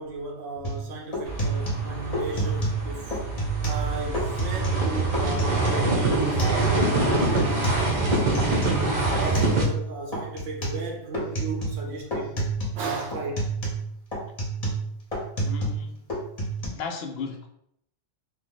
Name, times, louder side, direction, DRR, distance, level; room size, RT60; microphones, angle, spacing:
voice 1, 0.0-3.2 3.7-7.0 7.3-7.9 9.1-12.3 12.7-13.5, right 3 dB, 85° right, 0 dB, 1.0 m, -35 dB
sound 1, 0.6-0.8 1.1-2.8 3.1-3.9 4.1-4.8 5.1-6.9 7.1-9.9 10.1-10.8 11.1-11.9 12.1-12.8 13.1-15.8 16.1-16.7, right 2 dB, 35° left, 0.8 m, -28 dB
sound 2, 1.2-9.6, right 2 dB, 50° right, 0.6 m, -25 dB
voice 2, 15.4-16.0 16.7-17.5, left 5 dB, 65° left, 3 dB, 0.7 m, -35 dB
2.7 x 2.0 x 3.8 m, 0.73 s
omnidirectional pair, 1.3 m